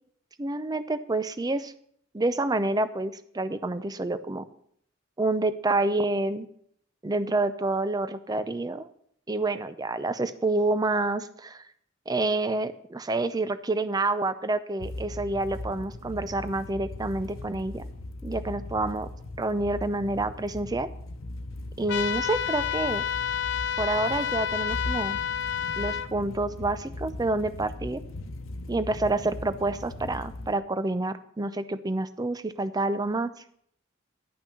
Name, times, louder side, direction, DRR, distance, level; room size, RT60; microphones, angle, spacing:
voice 1, 0.4-1.7 2.1-4.4 5.2-6.5 7.0-8.9 9.3-11.6 12.1-17.8 18.2-19.1 19.4-20.9 21.8-23.0 23.8-25.2 25.8-28.0 28.7-33.3, right 2 dB, 20° right, 13 dB, 0.5 m, -28 dB
sound 1, 14.8-30.5, left 1 dB, 80° left, 0.9 m, -39 dB
sound 2, 21.9-26.1, left 9 dB, 60° left, 0.5 m, -29 dB
10.5 x 5.9 x 6.8 m, 0.66 s
head